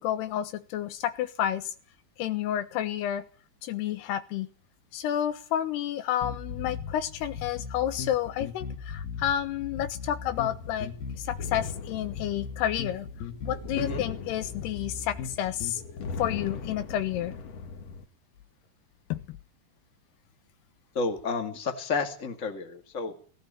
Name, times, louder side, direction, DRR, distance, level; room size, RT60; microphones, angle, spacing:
voice 1, 0.0-1.7 2.2-3.2 3.6-4.5 4.9-13.1 13.4-15.8 16.2-17.3 19.1-19.4, left 11 dB, 85° left, 3.3 m, -30 dB
sound 1, 6.2-15.8, left 6 dB, 70° left, 4.1 m, -38 dB
sound 2, 10.2-18.1, left 5 dB, 50° left, 2.2 m, -41 dB
voice 2, 20.9-23.1, left 4 dB, 25° left, 2.1 m, -31 dB
17.5 x 16.5 x 9.0 m
omnidirectional pair, 4.6 m